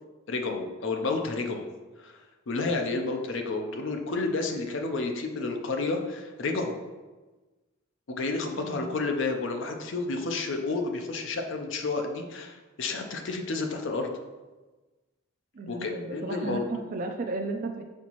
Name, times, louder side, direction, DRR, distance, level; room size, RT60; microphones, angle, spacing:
voice 1, 0.3-1.6 2.0-2.2 2.5-6.7 8.1-14.1 15.7-16.7, left 3 dB, 65° left, 4 dB, 0.5 m, -30 dB
voice 2, 8.6-9.0 15.5-17.8, right 2 dB, 40° right, 3 dB, 0.3 m, -34 dB
4.3 x 4.0 x 3.0 m, 1.2 s
head